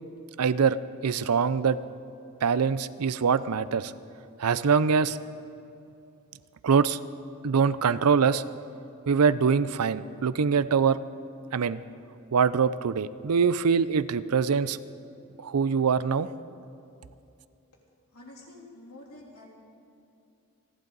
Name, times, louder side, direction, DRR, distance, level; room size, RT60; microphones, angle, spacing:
voice 1, 0.4-1.8 2.4-3.9 4.4-5.2 6.6-7.0 7.4-8.4 9.1-11.0 11.5-11.8 12.3-14.8 15.4-16.3, right 6 dB, 90° right, 15 dB, 0.5 m, -24 dB
voice 2, 18.1-19.5, left 2 dB, 80° left, -3 dB, 3.4 m, -48 dB
28.5 x 11.5 x 4.0 m, 2.6 s
head